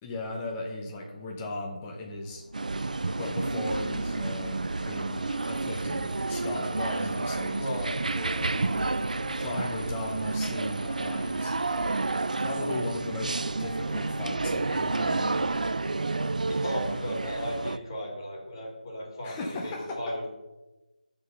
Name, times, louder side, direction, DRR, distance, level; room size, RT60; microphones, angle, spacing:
voice 1, 0.0-2.4 3.2-7.7 9.3-11.6 12.4-15.4 19.2-20.0, left 2 dB, 10° left, -1 dB, 0.5 m, -37 dB
sound 1, 1.9-17.6, left 1 dB, 55° left, 1.5 m, -44 dB
sound 2, 2.5-17.8, right 3 dB, 60° right, 0.4 m, -30 dB
sound 3, 5.4-13.0, right 2 dB, 75° right, 0.9 m, -46 dB
voice 2, 7.6-8.7 16.5-20.3, equal, 30° left, -2 dB, 2.2 m, -35 dB
7.7 x 3.9 x 6.5 m, 1.1 s
figure-of-eight pair, 170°, 5 cm